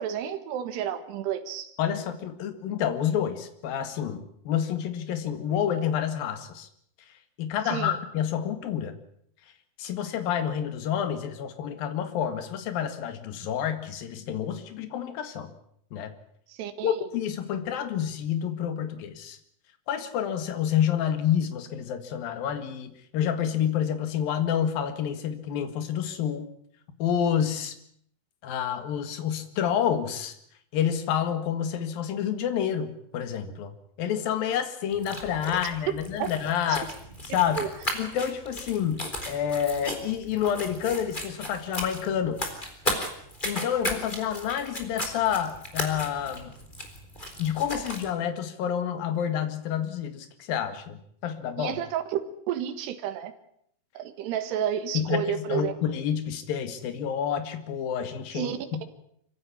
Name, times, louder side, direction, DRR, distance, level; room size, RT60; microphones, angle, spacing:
voice 1, 0.0-1.7 7.7-8.0 16.5-17.0 36.2-36.3 37.6-37.7 51.6-52.0 52.5-53.3 54.0-55.7 58.3-58.8, right 9 dB, 80° right, 9 dB, 3.7 m, -31 dB
voice 2, 1.8-6.7 7.4-9.0 9.8-15.5 15.9-16.1 16.8-19.4 19.9-26.5 27.0-27.8 28.4-30.4 30.7-33.7 34.0-36.9 37.2-37.7 37.9-42.4 43.4-46.5 47.4-51.8 54.9-58.8, left 9 dB, 65° left, 9 dB, 3.6 m, -28 dB
sound 1, 34.9-48.1, left 1 dB, 10° left, 3.6 m, -36 dB
25.5 x 16.0 x 10.0 m, 0.70 s
omnidirectional pair, 4.8 m